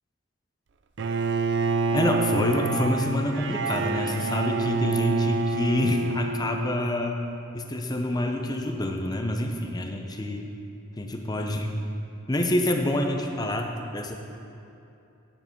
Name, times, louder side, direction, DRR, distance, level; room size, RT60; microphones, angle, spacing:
Bowed string instrument, 1.0-7.1, right 3 dB, 55° right, 0.5 m, -27 dB
voice 1, 1.9-7.2 7.5-10.5 11.0-11.7 12.3-14.2, left 1 dB, 20° left, 3 dB, 0.7 m, -27 dB
9.6 x 8.9 x 5.2 m, 2.8 s
head